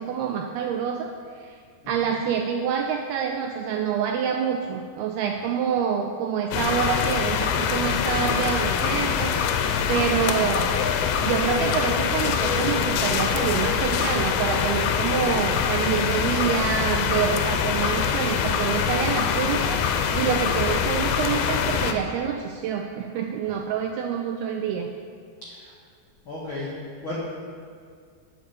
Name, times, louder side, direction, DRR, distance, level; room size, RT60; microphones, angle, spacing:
voice 1, 0.0-1.6 1.9-10.7 11.2-24.9, right 7 dB, 85° right, 3 dB, 2.3 m, -27 dB
sound 1, 6.5-21.9, left 7 dB, 85° left, 3.0 m, -24 dB
voice 2, 25.4-25.7 26.2-27.2, left 2 dB, 65° left, -6 dB, 1.2 m, -36 dB
9.9 x 7.3 x 8.0 m, 2.2 s
omnidirectional pair, 5.1 m